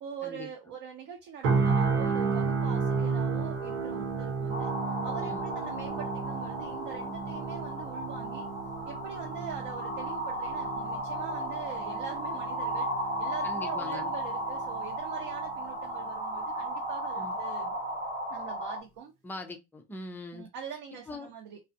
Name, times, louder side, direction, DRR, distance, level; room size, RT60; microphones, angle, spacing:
voice 1, 0.0-4.7 5.0-8.5 8.9-12.9 13.2-17.7 18.3-19.1 20.3-21.6, right 7 dB, 55° right, 0.7 m, -43 dB
sound 1, 1.4-15.4 15.8-16.0, right 4 dB, 85° right, 1.0 m, -33 dB
sound 2, 4.5-18.8, right 1 dB, 20° right, 0.9 m, -35 dB
voice 2, 13.4-14.1 17.2-17.3 19.2-20.5 21.1-21.3, left 2 dB, 5° left, 0.3 m, -41 dB
2.3 x 2.1 x 2.7 m
supercardioid pair, 90°, 42 cm